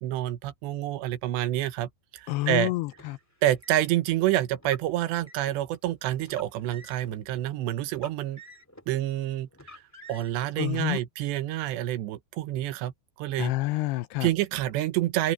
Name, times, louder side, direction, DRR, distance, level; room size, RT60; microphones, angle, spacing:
voice 1, 0.0-2.7 3.4-8.4 8.9-9.8 10.1-12.9 13.2-13.5 14.2-15.3, right 14 dB, 85° right, 3.2 m, -28 dB
voice 2, 2.3-3.2 10.6-11.0 13.4-14.3, left 18 dB, 80° left, 2.6 m, -28 dB
Car, 2.9-3.9 4.6-5.6 6.2-7.2 7.9-8.9 9.5-10.5, equal, 10° left, 0.7 m, -49 dB
open air
omnidirectional pair, 4.9 m